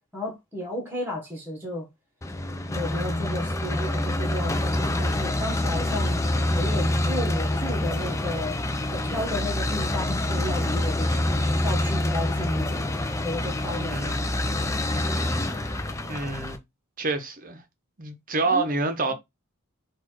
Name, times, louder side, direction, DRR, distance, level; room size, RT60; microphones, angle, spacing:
voice 1, 0.1-1.9 2.7-6.2 6.5-8.6 8.9-12.9 13.2-14.3 18.4-18.6, left 1 dB, 10° right, 1.3 m, -33 dB
sound 1, 2.2-16.6, left 1 dB, 15° left, 0.6 m, -26 dB
voice 2, 16.1-16.6 17.0-17.6 18.0-19.1, right 3 dB, 40° right, 0.8 m, -28 dB
4.2 x 2.5 x 4.5 m
head